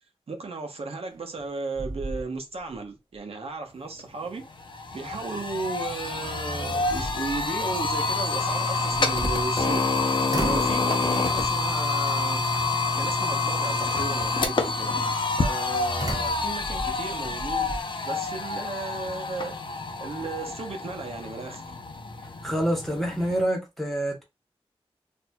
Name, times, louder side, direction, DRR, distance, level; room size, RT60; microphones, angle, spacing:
voice 1, 0.3-4.5 4.9-9.8 10.3-12.4 12.9-14.9 15.4-17.7 18.0-19.6 20.0-21.6, right 3 dB, 75° right, 0.8 m, -35 dB
sound 1, 1.1-1.5 1.8-2.8 3.1-3.2 5.9-6.0 6.6-7.5 8.8-9.9 10.3-10.8 11.4-11.7 12.5-13.0 16.0-17.8, right 2 dB, 35° right, 0.9 m, -35 dB
sound 2, 4.0-4.1 4.4-23.4, left 3 dB, 55° left, 0.6 m, -27 dB
voice 2, 22.4-24.2, right 1 dB, ahead, 1.3 m, -26 dB
4.2 x 2.6 x 2.2 m
wide cardioid pair, 105°, 10 cm